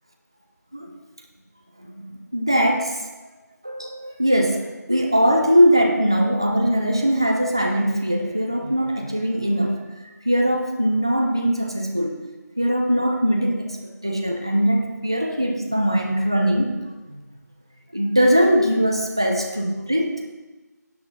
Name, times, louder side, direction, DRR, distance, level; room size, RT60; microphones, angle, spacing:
voice 1, 1.8-3.0 3.6-9.8 10.2-12.2 12.6-16.8 17.1-17.2 17.9-20.2, equal, 15° right, 2 dB, 0.4 m, -21 dB
9.8 x 8.5 x 4.0 m, 1.2 s
figure-of-eight pair, 170°, 10 cm